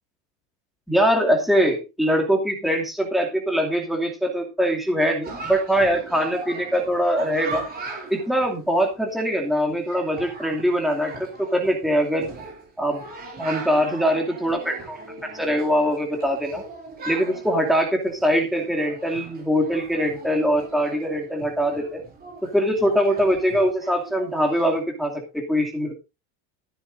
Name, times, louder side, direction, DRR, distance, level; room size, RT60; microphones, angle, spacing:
voice 1, 0.9-7.6 8.1-12.3 12.8-13.0 13.4-15.0 15.3-16.6 17.1-22.0 22.5-25.9, equal, ahead, 1 dB, 2.6 m, -22 dB
Chatter, 5.2-24.8, right 2 dB, 25° right, 5.6 m, -39 dB
14.5 x 12.0 x 2.6 m, 0.27 s
cardioid pair, 165°, 38 cm